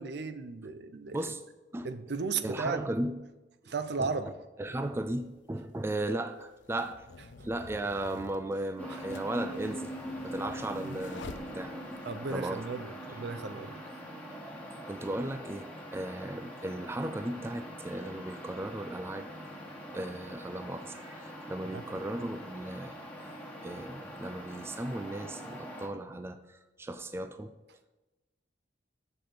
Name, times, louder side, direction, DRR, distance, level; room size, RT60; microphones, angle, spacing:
voice 1, 0.0-1.3 1.8-3.1 3.7-4.4 7.4-7.5 12.0-13.8 21.7-21.8 23.3-23.4, right 4 dB, 65° right, 10 dB, 0.5 m, -35 dB
voice 2, 2.4-3.2 3.6-3.7 4.0-4.1 4.6-7.1 7.4-9.9 10.2-11.8 12.3-12.6 14.9-19.3 19.9-23.0 23.6-27.5, right 1 dB, 15° right, 8 dB, 0.3 m, -36 dB
sound 1, 4.7-4.8 5.7-12.1, left 4 dB, 80° left, 0.5 m, -49 dB
sound 2, 8.8-25.9, equal, 10° left, 1.2 m, -43 dB
6.8 x 6.0 x 5.0 m, 1.1 s
head